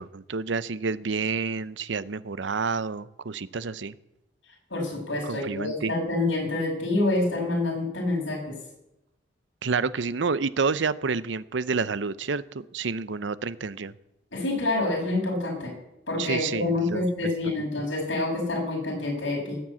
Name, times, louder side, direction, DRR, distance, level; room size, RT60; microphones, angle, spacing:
voice 1, 0.0-3.9 5.2-5.9 9.6-13.9 16.2-17.3, right 4 dB, 70° right, 17 dB, 0.7 m, -29 dB
voice 2, 4.7-8.6 14.3-15.7 16.1-19.6, left 2 dB, 80° left, 0 dB, 6.0 m, -27 dB
18.0 x 7.7 x 8.5 m, 0.90 s
head